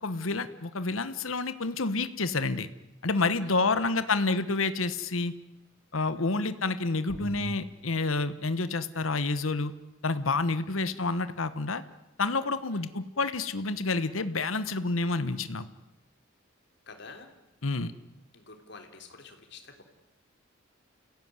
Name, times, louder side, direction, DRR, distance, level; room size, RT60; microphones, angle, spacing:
voice 1, 0.0-2.7 3.0-5.3 5.9-9.7 10.0-11.8 12.2-15.7 17.6-17.9, left 3 dB, 80° left, 13 dB, 1.1 m, -29 dB
voice 2, 3.4-4.4 6.0-6.5 10.5-11.0 12.7-12.9 16.9-17.3 18.3-19.8, left 4 dB, 55° left, 5 dB, 3.6 m, -50 dB
sound 1, 7.1-7.5, equal, 35° left, 2.3 m, -39 dB
29.5 x 16.5 x 9.6 m, 0.96 s
head